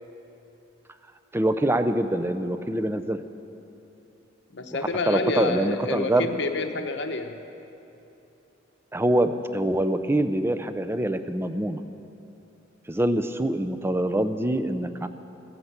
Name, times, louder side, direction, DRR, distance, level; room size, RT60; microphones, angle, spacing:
voice 1, 1.3-3.2 5.1-6.3 8.9-11.8 12.9-15.1, right 1 dB, 10° right, 10 dB, 0.5 m, -25 dB
voice 2, 4.5-7.4, left 3 dB, 60° left, 6 dB, 0.9 m, -28 dB
16.0 x 10.0 x 8.1 m, 2.9 s
head